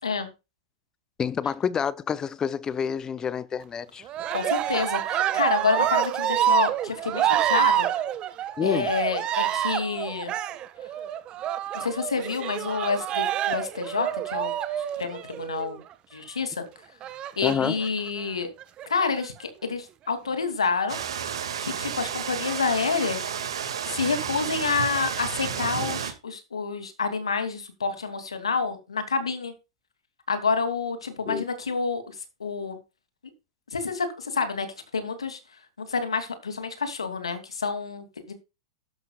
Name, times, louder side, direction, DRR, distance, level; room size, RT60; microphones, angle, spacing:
voice 1, 1.2-4.0 8.6-8.9 17.4-17.8 31.3-31.4, left 7 dB, 20° left, 0.8 m, -28 dB
Cheering, 4.1-15.8 17.0-17.9 18.6-19.3, right 11 dB, 35° right, 1.3 m, -27 dB
voice 2, 4.3-7.9 8.6-10.3 11.7-14.5 15.0-15.8 16.1-16.6 17.4-18.5 18.9-21.0 21.6-23.3 23.9-29.5 30.3-32.8 33.7-34.7 34.9-35.4 35.8-38.3, left 5 dB, 85° left, 2.8 m, -28 dB
sound 1, 20.9-26.1, right 8 dB, 75° right, 2.2 m, -31 dB
12.5 x 12.0 x 2.4 m
hypercardioid pair, 100°, 3 cm